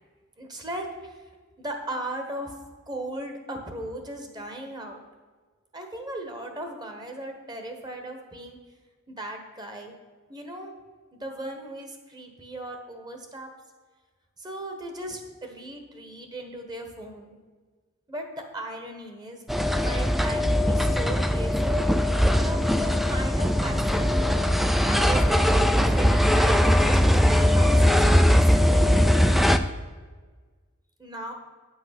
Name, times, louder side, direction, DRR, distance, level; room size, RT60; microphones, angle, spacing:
voice 1, 0.4-1.2 1.6-2.5 2.9-5.0 5.7-8.6 9.1-10.0 10.3-10.7 11.1-13.5 14.4-17.4 18.1-21.9 22.3-24.1 24.8-28.9 31.0-31.3, right 1 dB, 20° right, 4 dB, 1.3 m, -37 dB
sound 1, 19.5-29.6, equal, ahead, 0.3 m, -20 dB
9.2 x 6.2 x 5.9 m, 1.4 s
head